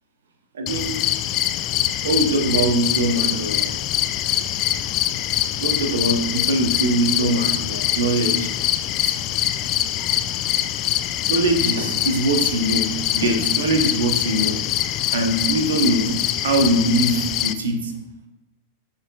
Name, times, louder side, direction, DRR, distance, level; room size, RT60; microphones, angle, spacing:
voice 1, 0.5-0.9 2.0-3.7 4.4-4.5 5.6-8.5 9.4-9.5 11.3-12.9 13.1-14.6 15.1-16.1 16.4-17.9, right 2 dB, 70° right, 4 dB, 0.9 m, -22 dB
sound 1, 0.7-17.5, left 12 dB, 40° left, 0.3 m, -24 dB
11.0 x 4.1 x 2.3 m, 0.95 s
figure-of-eight pair, 95°, 0 cm